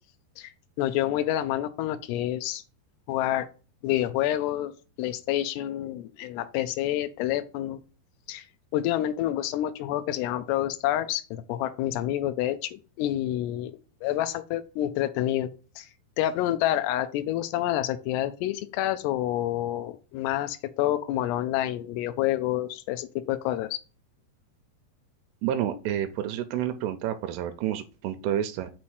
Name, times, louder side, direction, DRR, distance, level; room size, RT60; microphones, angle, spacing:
voice 1, 0.8-2.6 3.1-3.5 3.8-4.7 5.0-7.8 8.3-8.5 8.7-13.7 14.0-15.5 15.8-15.9 16.2-23.8, left 13 dB, 85° left, 8 dB, 2.7 m, -28 dB
voice 2, 25.4-28.7, right 10 dB, 85° right, 8 dB, 2.6 m, -29 dB
6.1 x 4.3 x 4.7 m, 0.35 s
omnidirectional pair, 4.8 m